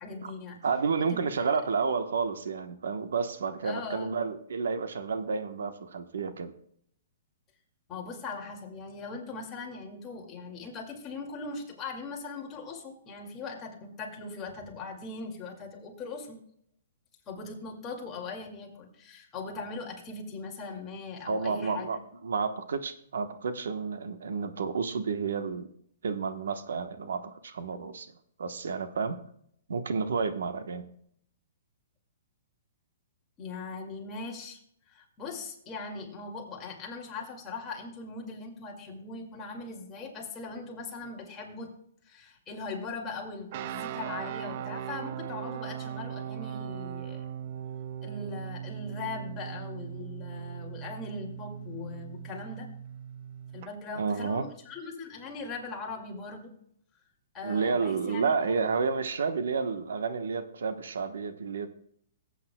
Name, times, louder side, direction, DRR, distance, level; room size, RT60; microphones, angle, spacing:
voice 1, 0.0-0.6 1.1-1.5 3.6-4.2 7.9-16.4 17.3-22.0 33.4-34.6 34.9-41.7 42.0-47.3 48.0-52.7 53.5-56.6 57.3-58.7, left 3 dB, 20° left, 0 dB, 2.2 m, -40 dB
voice 2, 0.6-6.5 21.3-22.0 22.2-25.7 26.0-28.1 28.4-29.2 29.7-30.8 54.0-54.5 57.4-61.7, right 5 dB, 85° right, 9 dB, 1.1 m, -30 dB
sound 1, 43.5-53.7, right 10 dB, 45° right, 0.4 m, -39 dB
17.0 x 8.6 x 2.3 m, 0.67 s
hypercardioid pair, 155°, 0 cm